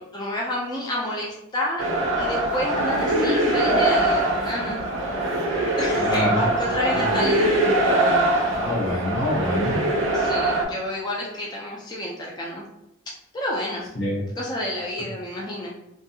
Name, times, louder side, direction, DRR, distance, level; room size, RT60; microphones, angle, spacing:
voice 1, 0.0-1.9 2.2-4.8 5.8-7.5 10.1-12.7 13.3-13.9 14.4-15.7, left 1 dB, 20° left, -4 dB, 0.3 m, -29 dB
sound 1, 1.8-10.6, right 1 dB, 70° right, 0.5 m, -22 dB
voice 2, 5.9-6.4 8.5-9.8 13.9-14.2 15.0-15.1, left 1 dB, 75° left, -4 dB, 1.0 m, -25 dB
2.6 x 2.3 x 2.6 m, 0.85 s
head